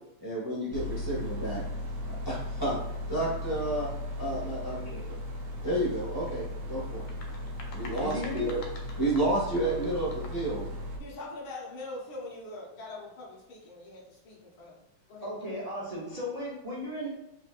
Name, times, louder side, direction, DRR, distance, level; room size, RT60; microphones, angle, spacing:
voice 1, 0.2-1.6 2.1-2.8 3.1-3.9 4.2-4.8 5.6-7.1 7.7-8.6 9.0-10.7, right 1 dB, 15° right, -7 dB, 1.1 m, -31 dB
sound 1, 0.7-11.0, left 1 dB, 75° right, 0.7 m, -37 dB
voice 2, 4.7-5.0 8.0-8.5 15.2-17.1, equal, 50° right, -7 dB, 0.4 m, -36 dB
sound 2, 6.9-10.6, left 3 dB, 90° left, 1.6 m, -48 dB
voice 3, 11.0-14.8 15.1-15.3, left 2 dB, 70° left, -4 dB, 1.8 m, -42 dB
4.4 x 3.3 x 2.5 m, 0.89 s
omnidirectional pair, 2.3 m